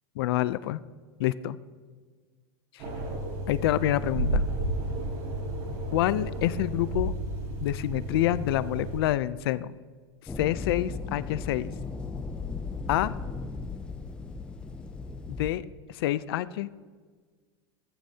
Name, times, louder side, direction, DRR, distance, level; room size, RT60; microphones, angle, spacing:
voice 1, 0.2-0.8 1.2-1.6 2.7-2.8 3.5-4.4 5.9-7.1 7.6-9.7 10.4-11.7 12.9-13.1 15.3-16.7, left 14 dB, 60° left, 17 dB, 0.5 m, -27 dB
sound 1, 2.8-9.0, right 1 dB, 50° right, 3.8 m, -32 dB
sound 2, 10.3-15.5, left 4 dB, 5° left, 0.5 m, -36 dB
15.0 x 14.5 x 2.8 m, 1.5 s
supercardioid pair, 170°, 14 cm